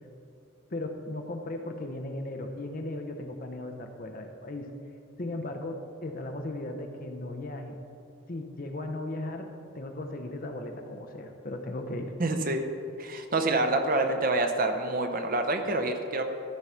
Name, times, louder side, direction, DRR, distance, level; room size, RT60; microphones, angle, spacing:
voice 1, 0.7-4.7 5.2-7.7 8.3-9.5 9.7-12.1, left 1 dB, 40° left, 4 dB, 0.8 m, -36 dB
voice 2, 12.2-12.6 13.0-16.2, right 2 dB, 40° right, 5 dB, 0.7 m, -27 dB
14.0 x 4.8 x 5.7 m, 2.9 s
head